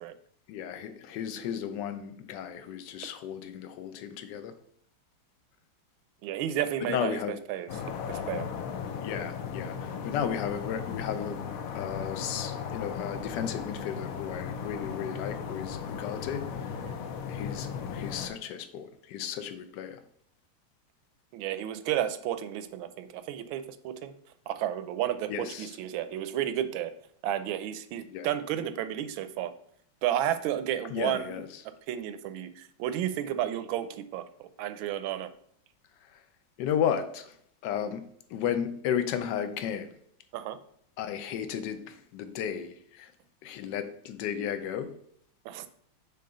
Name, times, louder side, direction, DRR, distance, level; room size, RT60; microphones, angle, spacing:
voice 1, 0.5-4.5 6.8-7.4 9.0-16.7 17.3-20.0 25.3-25.8 28.1-28.3 30.9-31.5 36.6-37.3 37.6-38.0 38.3-39.9 41.0-43.1 43.4-44.9, left 8 dB, 65° left, 9 dB, 1.2 m, -34 dB
voice 2, 6.2-7.2 7.5-7.7 8.1-8.5 16.8-17.0 21.3-24.1 24.5-26.9 27.2-29.5 30.0-34.2 34.6-35.3 40.3-40.6 45.4-45.7, right 11 dB, 80° right, 11 dB, 1.3 m, -32 dB
sound 1, 7.7-18.3, left 7 dB, 85° left, 0.7 m, -36 dB
6.6 x 4.0 x 5.3 m, 0.66 s
omnidirectional pair, 2.3 m